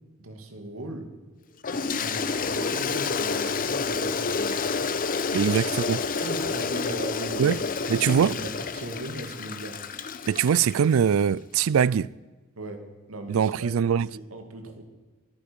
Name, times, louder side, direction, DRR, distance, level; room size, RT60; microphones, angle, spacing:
voice 1, 0.2-1.1 2.0-4.9 5.4-5.5 6.1-7.6 7.9-9.8 12.6-14.8, right 1 dB, 90° right, 2.3 m, -38 dB
Toilet flush, 1.6-11.0, left 4 dB, 40° left, 0.8 m, -29 dB
voice 2, 5.3-6.0 7.4-7.6 7.9-8.3 10.3-12.1 13.3-14.1, right 7 dB, 70° right, 0.4 m, -22 dB
23.5 x 9.6 x 5.3 m
head